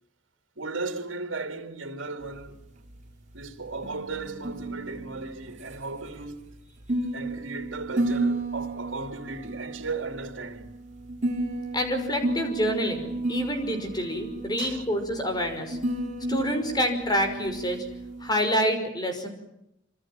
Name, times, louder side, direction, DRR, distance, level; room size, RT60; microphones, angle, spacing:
voice 1, 0.6-2.6 3.3-6.5 7.1-10.8 14.6-14.8, right 3 dB, 90° right, 2.8 m, -36 dB
sound 1, 2.2-18.3, right 1 dB, 40° right, 5.7 m, -33 dB
voice 2, 11.7-15.8 16.3-17.8 18.2-19.3, equal, 20° left, 5.6 m, -27 dB
26.5 x 26.5 x 7.6 m
head